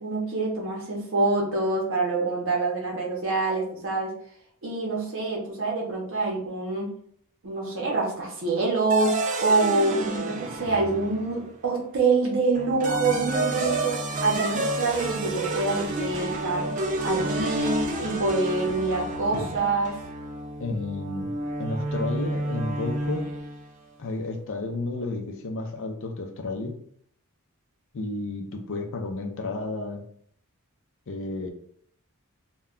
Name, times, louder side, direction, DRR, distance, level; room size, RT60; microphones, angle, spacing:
voice 1, 0.0-4.1 4.6-6.9 7.4-16.7 17.0-20.0, right 3 dB, 60° right, -2 dB, 0.7 m, -26 dB
sound 1, 8.9-11.5 12.5-23.7, right 2 dB, 35° right, 0.3 m, -30 dB
voice 2, 20.6-23.3 24.0-26.8 27.9-30.0 31.1-31.5, left 2 dB, 60° left, 4 dB, 0.5 m, -32 dB
2.2 x 2.2 x 3.6 m, 0.63 s
head